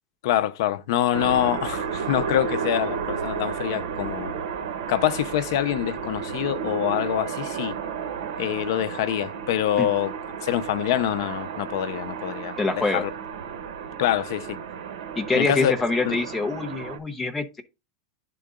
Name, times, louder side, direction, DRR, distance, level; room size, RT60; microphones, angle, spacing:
voice 1, 0.2-4.4 4.9-7.8 8.4-10.1 10.4-13.1 14.0-14.6 15.3-15.7 16.1-16.2, left 11 dB, 55° left, 0.6 m, -25 dB
sound 1, 1.1-17.0, right 7 dB, 75° right, 1.1 m, -33 dB
voice 2, 12.6-13.1 15.2-17.6, left 3 dB, 5° left, 0.7 m, -25 dB
10.5 x 3.8 x 3.6 m
supercardioid pair, 180°, 2 cm